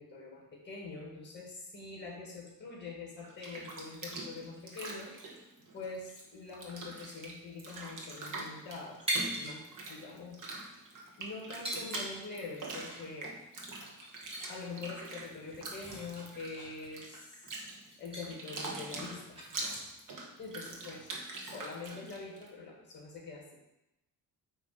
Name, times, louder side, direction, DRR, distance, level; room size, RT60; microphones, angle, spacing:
voice 1, 0.0-5.2 5.7-9.0 9.4-10.4 11.2-13.3 14.5-17.3 18.0-19.4 20.4-21.1 21.4-23.5, left 4 dB, 25° left, -1 dB, 1.7 m, -44 dB
Bathtub (filling or washing), 3.2-6.2 6.5-22.5, right 2 dB, 50° right, 1.2 m, -44 dB
sound 1, 9.1-9.6 9.9-10.0 10.7-11.0 11.6-12.6 12.9-13.0 13.5-13.6 14.0-14.5 14.9-15.0 15.4-17.5 17.9-18.3 18.7-20.0, right 1 dB, 15° right, 1.5 m, -40 dB
8.8 x 3.0 x 4.8 m, 0.91 s
cardioid pair, 170°, 39 cm